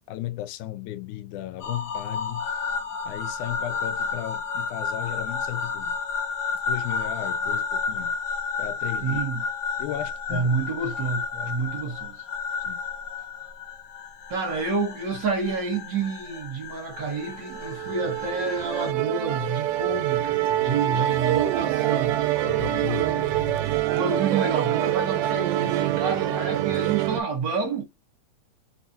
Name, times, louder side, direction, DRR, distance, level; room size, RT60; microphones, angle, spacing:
voice 1, 0.1-2.6 3.1-6.0 6.7-8.1 8.6-9.2 9.8-10.5 11.4-11.5 12.6-12.8 22.4-23.6, left 14 dB, 80° left, 2.0 m, -35 dB
sound 1, 1.6-18.9, left 5 dB, 40° left, 1.7 m, -32 dB
voice 2, 9.0-9.4 10.3-12.2 14.3-22.1 23.9-27.8, right 4 dB, 55° right, 1.3 m, -29 dB
Musical instrument, 17.1-27.2, right 13 dB, 85° right, 2.1 m, -25 dB
4.3 x 4.1 x 2.7 m
omnidirectional pair, 3.6 m